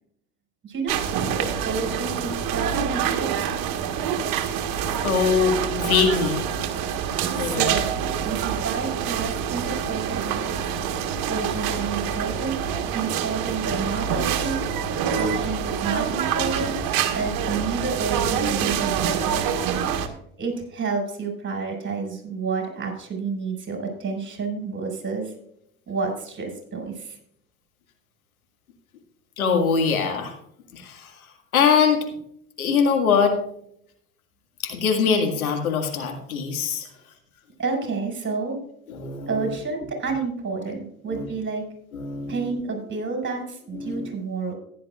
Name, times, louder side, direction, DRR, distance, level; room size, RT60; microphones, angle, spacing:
voice 1, 0.6-1.0 1.4-3.3 7.3-8.0 8.2-10.8 11.3-12.6 12.9-14.6 15.1-16.8 17.1-19.5 20.4-25.3 25.9-27.2 37.6-38.6 39.3-41.6 42.3-44.5, right 4 dB, 25° right, 2 dB, 5.0 m, -30 dB
sound 1, 0.9-20.1, right 8 dB, 50° right, 1.4 m, -26 dB
voice 2, 5.0-6.5 7.4-7.8 16.6-16.7 29.4-30.4 30.7-31.1 31.5-32.1 32.6-33.3 34.6-36.9 38.9-39.3 41.1-41.2 41.9-42.5 43.7-44.1, left 6 dB, 80° left, 4 dB, 2.0 m, -22 dB
15.0 x 10.5 x 2.4 m, 0.72 s
hypercardioid pair, 75°, 42 cm